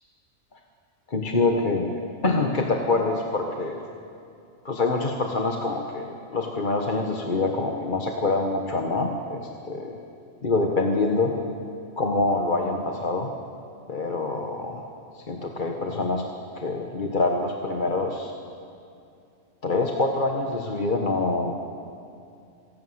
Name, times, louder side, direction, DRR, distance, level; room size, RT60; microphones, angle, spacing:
voice 1, 1.1-3.8 4.6-10.0 10.4-11.3 12.0-13.3 13.9-14.9 15.3-16.2 16.5-18.3 19.6-21.5, left 3 dB, 40° left, 2 dB, 1.5 m, -25 dB
26.5 x 17.0 x 8.0 m, 2.5 s
omnidirectional pair, 1.4 m